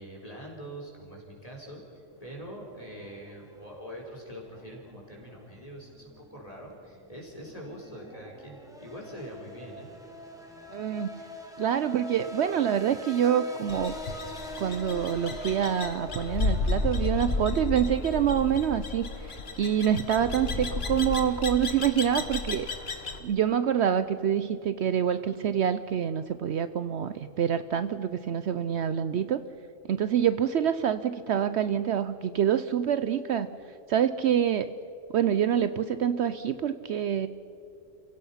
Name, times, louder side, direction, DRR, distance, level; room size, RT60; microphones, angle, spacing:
voice 1, 0.0-9.9, equal, 30° left, -2 dB, 4.4 m, -43 dB
sound 1, 2.1-21.9, equal, 5° right, 2.2 m, -45 dB
voice 2, 10.7-11.1 11.6-13.9 14.6-22.7 23.2-29.4 29.9-33.5 33.9-34.7 35.1-37.3, right 9 dB, 65° right, 12 dB, 0.8 m, -26 dB
sound 2, 13.7-23.2, left 3 dB, 55° left, 1.5 m, -32 dB
30.0 x 16.5 x 5.7 m, 2.9 s
omnidirectional pair, 1.3 m